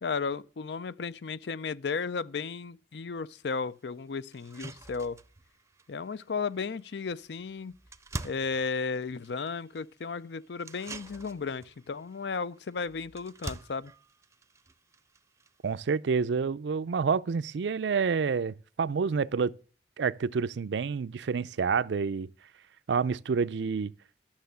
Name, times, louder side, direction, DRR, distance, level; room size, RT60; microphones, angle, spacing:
voice 1, 0.0-5.2 5.9-7.8 8.2-13.9, left 5 dB, 75° left, 0.5 m, -34 dB
sound 1, 3.3-3.4 3.9-4.0 4.3-16.0, right 2 dB, 15° right, 0.5 m, -47 dB
voice 2, 15.6-19.5 20.0-22.3 22.9-23.9, right 5 dB, 80° right, 0.4 m, -28 dB
11.5 x 6.6 x 6.8 m
head